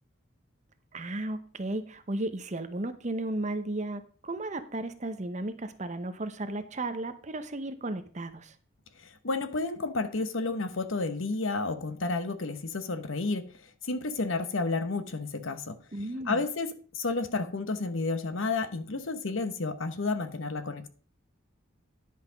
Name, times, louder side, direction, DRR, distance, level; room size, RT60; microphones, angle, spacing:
voice 1, 0.9-8.5 15.9-16.4, right 2 dB, 35° right, 0.8 m, -34 dB
voice 2, 9.0-13.4 13.8-15.8 16.3-20.9, left 3 dB, 70° left, 0.9 m, -31 dB
10.5 x 5.8 x 5.0 m
head